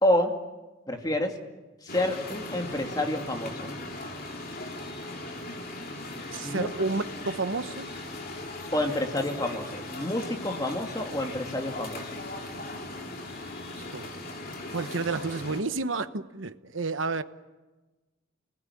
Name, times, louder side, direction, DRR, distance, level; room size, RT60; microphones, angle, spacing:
voice 1, 0.0-0.3 0.9-1.3 1.8-3.7 6.4-6.7 8.7-12.1, left 1 dB, 20° left, 2.5 m, -28 dB
sound 1, 1.9-15.6, left 2 dB, 50° left, 3.1 m, -38 dB
voice 2, 6.3-7.9 13.7-14.1 14.7-17.2, right 3 dB, 80° right, 1.1 m, -31 dB
29.5 x 20.5 x 9.9 m
head